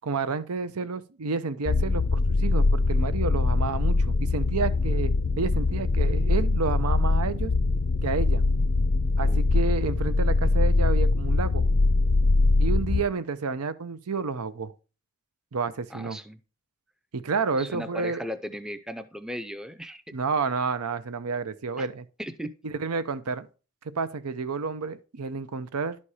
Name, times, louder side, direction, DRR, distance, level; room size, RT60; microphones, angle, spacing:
voice 1, 0.0-7.5 8.0-8.4 9.2-11.7 12.6-14.7 15.5-16.2 17.1-18.2 20.1-22.1 22.6-23.5 23.8-26.0, right 4 dB, 85° right, 0.7 m, -30 dB
sound 1, 1.7-13.0, left 3 dB, 55° left, 0.5 m, -23 dB
voice 2, 15.9-16.4 17.6-20.0 21.8-21.9 22.2-22.5, equal, 5° right, 0.5 m, -36 dB
11.0 x 4.3 x 4.8 m
head